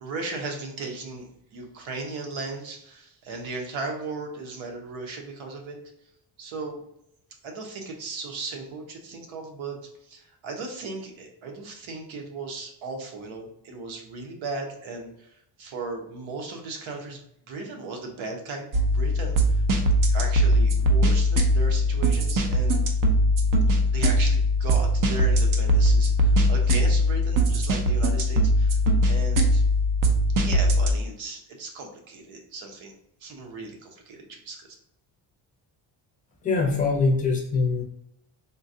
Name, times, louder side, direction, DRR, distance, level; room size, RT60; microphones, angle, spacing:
voice 1, 0.0-5.8 6.4-6.8 7.4-9.8 10.1-15.3 15.6-17.2 17.5-18.7 18.9-19.6 20.1-22.8 23.9-28.8 29.0-29.6 30.4-32.9 33.2-34.7, right 3 dB, 80° right, 2 dB, 0.9 m, -36 dB
sound 1, 18.7-30.9, equal, 45° right, 0.5 m, -21 dB
voice 2, 36.4-37.8, left 3 dB, 15° left, 0 dB, 0.5 m, -23 dB
3.8 x 2.3 x 2.6 m, 0.75 s
cardioid pair, 170°, 47 cm